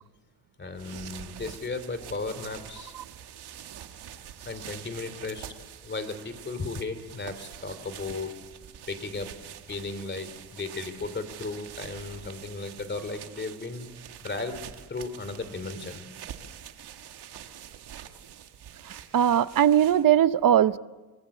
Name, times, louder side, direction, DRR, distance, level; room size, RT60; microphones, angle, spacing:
voice 1, 0.6-2.9 4.4-5.4 5.8-8.3 8.9-9.3 9.7-13.9 14.2-14.6 14.9-16.1, left 3 dB, 30° left, 11 dB, 2.9 m, -35 dB
sound 1, 0.6-20.2, right 10 dB, 85° right, 1.8 m, -45 dB
voice 2, 19.1-20.8, right 10 dB, 60° right, 15 dB, 0.8 m, -20 dB
25.0 x 23.5 x 8.3 m, 1.3 s
cardioid pair, 130°, 38 cm